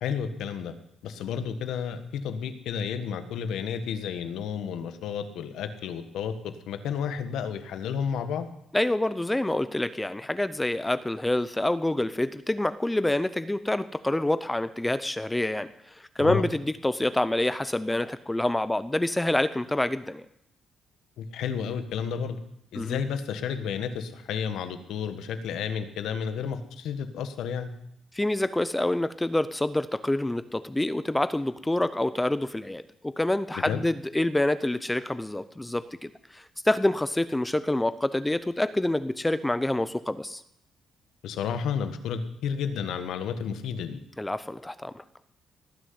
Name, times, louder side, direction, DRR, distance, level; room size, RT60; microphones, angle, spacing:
voice 1, 0.0-0.7 1.0-8.5 16.2-16.4 21.2-22.4 22.7-27.7 33.5-33.8 41.2-44.0, left 7 dB, 80° left, 9 dB, 1.4 m, -31 dB
voice 2, 8.7-15.7 16.2-20.2 22.8-23.0 28.1-40.4 44.2-45.0, left 1 dB, 10° left, 14 dB, 0.7 m, -27 dB
18.5 x 6.6 x 9.6 m, 0.76 s
cardioid pair, 90°, 0 cm